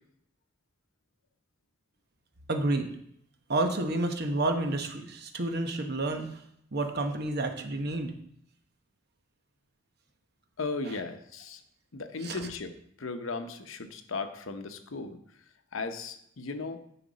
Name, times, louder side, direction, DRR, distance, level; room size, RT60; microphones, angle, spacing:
voice 1, 2.5-2.9 3.5-6.3 6.7-8.1 10.9-11.0 12.2-12.5, right 2 dB, 55° right, 5 dB, 1.0 m, -30 dB
voice 2, 10.6-11.6 11.9-15.2 15.7-16.8, left 3 dB, 80° left, 8 dB, 0.8 m, -36 dB
10.0 x 5.8 x 4.1 m, 0.71 s
head